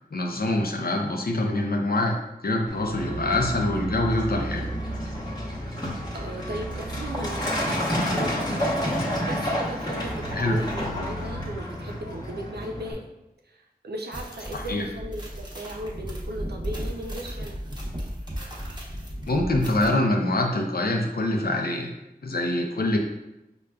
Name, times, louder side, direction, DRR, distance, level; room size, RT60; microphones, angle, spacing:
voice 1, 0.1-2.1 2.4-4.7 10.3-10.6 14.5-14.8 19.3-21.9 22.2-23.0, left 2 dB, 70° left, 1 dB, 0.5 m, -25 dB
Truck, 2.7-12.9, equal, 25° left, 1.0 m, -30 dB
voice 2, 3.1-3.4 5.7-5.9 6.1-8.8 9.2-13.1 13.5-17.6, right 1 dB, 90° right, 1 dB, 0.5 m, -37 dB
sound 1, 14.1-19.9, equal, 25° right, 0.9 m, -35 dB
5.1 x 2.3 x 2.3 m, 0.95 s
wide cardioid pair, 45°, 16 cm